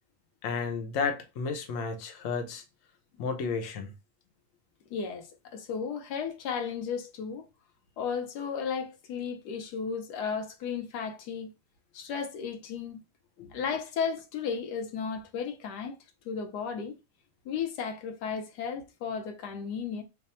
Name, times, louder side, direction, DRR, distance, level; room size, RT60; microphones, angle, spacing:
voice 1, 0.4-2.6 3.2-3.9 13.4-13.5, left 5 dB, 60° left, 1.0 m, -32 dB
voice 2, 4.9-7.5 8.0-11.5 11.9-13.0 13.5-16.0 16.2-17.0 17.4-20.0, left 6 dB, 90° left, 1.3 m, -34 dB
3.3 x 2.1 x 4.1 m
omnidirectional pair, 1.7 m